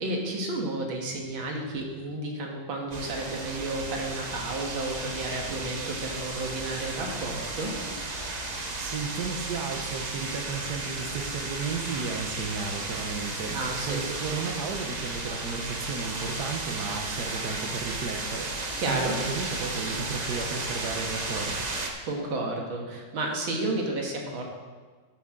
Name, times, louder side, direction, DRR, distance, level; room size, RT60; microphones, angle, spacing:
voice 1, 0.0-7.7 13.5-14.0 18.8-19.1 22.1-24.4, right 2 dB, 80° right, 0 dB, 2.4 m, -32 dB
sound 1, 2.9-21.9, right 2 dB, 35° right, 0.7 m, -34 dB
voice 2, 8.4-21.7, right 5 dB, 60° right, 3 dB, 1.4 m, -34 dB
13.5 x 8.5 x 3.8 m, 1.5 s
omnidirectional pair, 2.1 m